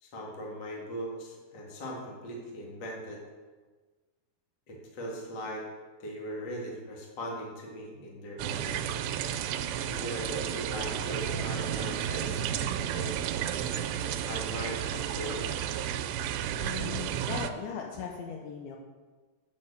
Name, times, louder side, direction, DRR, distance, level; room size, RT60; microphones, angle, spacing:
voice 1, 0.0-3.2 4.7-5.7 6.0-8.9 9.8-12.6 12.9-13.2 13.9-15.5, equal, 45° left, -2 dB, 1.4 m, -39 dB
sound 1, 8.4-17.5, right 9 dB, 90° right, 2.7 m, -32 dB
voice 2, 16.6-18.8, left 7 dB, 75° left, 1 dB, 2.3 m, -38 dB
8.7 x 5.6 x 6.8 m, 1.4 s
omnidirectional pair, 4.8 m